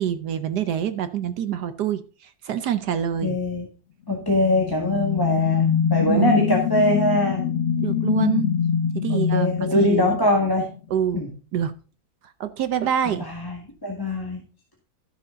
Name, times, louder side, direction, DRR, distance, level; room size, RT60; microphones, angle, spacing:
voice 1, 0.0-3.4 6.0-6.4 7.8-8.5 8.9-9.5 9.7-10.2 10.9-11.2 11.5-11.7 12.4-13.3, right 9 dB, 65° right, 1.2 m, -26 dB
voice 2, 3.2-3.7 4.1-7.5 9.1-10.7 11.1-11.3 13.0-14.4, left 2 dB, 10° left, 1.6 m, -23 dB
sound 1, 4.2-10.7, left 7 dB, 50° left, 0.9 m, -23 dB
13.0 x 6.7 x 3.9 m
omnidirectional pair, 2.1 m